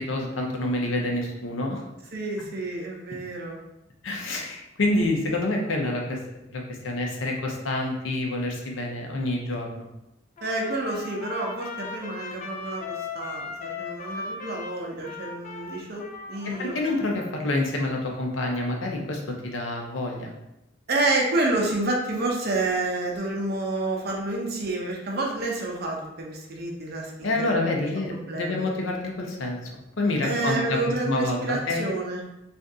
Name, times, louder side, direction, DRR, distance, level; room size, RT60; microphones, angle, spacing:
voice 1, 0.0-1.8 2.4-2.5 4.0-6.2 6.5-9.8 16.6-20.3 27.2-29.6 30.0-31.9, left 2 dB, 85° left, 1 dB, 0.7 m, -27 dB
voice 2, 2.1-3.6 10.4-16.7 20.9-27.6 28.1-28.7 30.2-32.2, right 2 dB, 55° right, -1 dB, 0.6 m, -29 dB
Trumpet, 10.4-17.5, left 4 dB, 40° left, 0.3 m, -38 dB
2.6 x 2.5 x 3.5 m, 0.88 s
head